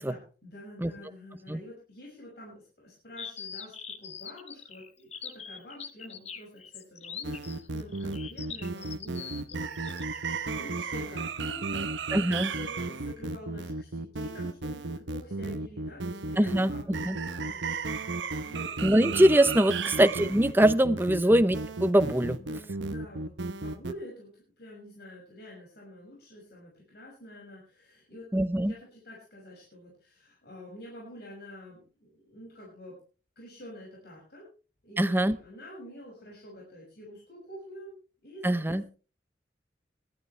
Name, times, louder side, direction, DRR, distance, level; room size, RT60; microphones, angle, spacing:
voice 1, 0.0-3.7 4.0-11.9 12.2-18.7 19.7-20.0 21.1-21.3 22.4-24.3 24.6-28.3 28.6-32.9 33.4-34.4 34.8-37.9 38.2-38.9, left 1 dB, 60° left, -3 dB, 6.3 m, -47 dB
sound 1, 3.2-10.2, left 7 dB, 35° left, 1.1 m, -42 dB
sound 2, 7.2-23.9, right 3 dB, 85° right, 1.0 m, -34 dB
voice 2, 12.1-12.5 16.4-16.7 17.1-17.2 18.8-22.4 28.3-28.7 35.0-35.4 38.4-38.8, right 1 dB, 10° right, 12 dB, 0.7 m, -23 dB
20.5 x 12.5 x 3.3 m, 0.36 s
head